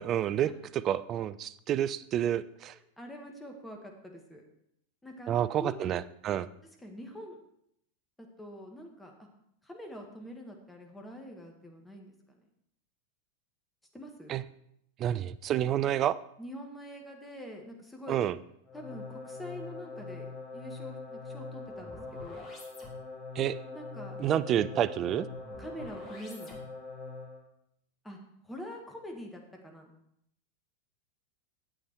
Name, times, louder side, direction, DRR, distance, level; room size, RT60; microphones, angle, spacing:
voice 1, 0.0-2.7 5.3-6.5 14.3-14.4 15.0-16.2 18.1-18.3 23.4-23.6 24.2-25.3, right 11 dB, 30° right, 15 dB, 0.4 m, -29 dB
voice 2, 2.7-4.4 5.0-5.9 6.8-7.4 8.2-9.3 9.6-12.4 13.9-14.3 16.4-18.2 18.7-22.5 23.7-24.2 25.6-26.6 28.0-28.2 28.4-29.9, equal, 5° left, 1 dB, 1.8 m, -45 dB
sound 1, 18.7-27.5, left 3 dB, 20° left, 2.5 m, -43 dB
9.7 x 8.0 x 4.6 m, 0.73 s
figure-of-eight pair, 90°, 0 cm